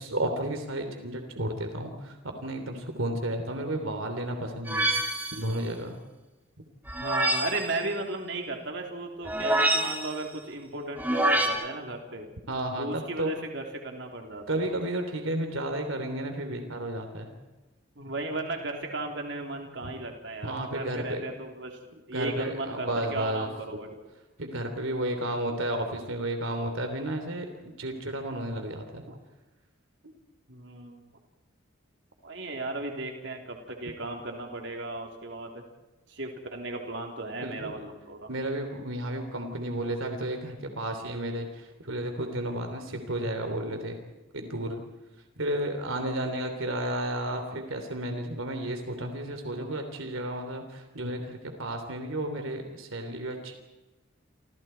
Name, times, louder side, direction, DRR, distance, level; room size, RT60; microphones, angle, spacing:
voice 1, 0.0-4.8 5.3-6.0 12.5-12.9 13.2-13.3 14.5-17.3 20.4-21.2 22.1-23.8 24.4-29.0 37.4-37.8 38.3-44.0 44.3-44.8 45.4-53.6, right 1 dB, 80° right, 5 dB, 3.2 m, -32 dB
sound 1, 4.7-5.5 6.9-7.7 9.3-10.2 11.0-11.5, right 1 dB, 10° right, 2.8 m, -26 dB
voice 2, 7.0-12.3 12.8-14.8 18.0-21.8 22.1-24.1 29.1-29.2 30.5-31.0 32.2-35.6 36.1-38.5 43.6-43.7, right 2 dB, 60° right, 2 dB, 3.5 m, -35 dB
29.0 x 27.0 x 4.5 m, 1.1 s
head